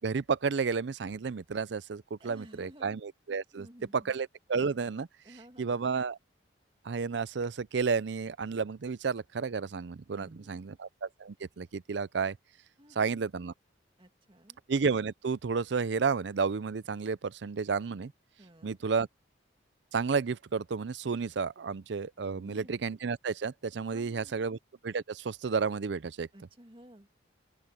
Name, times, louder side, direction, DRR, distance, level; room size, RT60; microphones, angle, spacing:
voice 1, 0.0-3.7 3.9-5.1 5.6-6.2 6.8-12.4 13.0-13.5 14.7-18.1 18.6-19.1 19.9-24.6 24.8-26.3, right 5 dB, 65° right, 0.5 m, -31 dB
voice 2, 2.2-2.9 3.5-4.1 5.2-5.8 10.1-10.8 12.8-13.2 14.0-14.6 18.4-18.8 22.3-22.7 23.9-24.5 26.3-27.1, equal, 25° right, 2.4 m, -54 dB
open air
head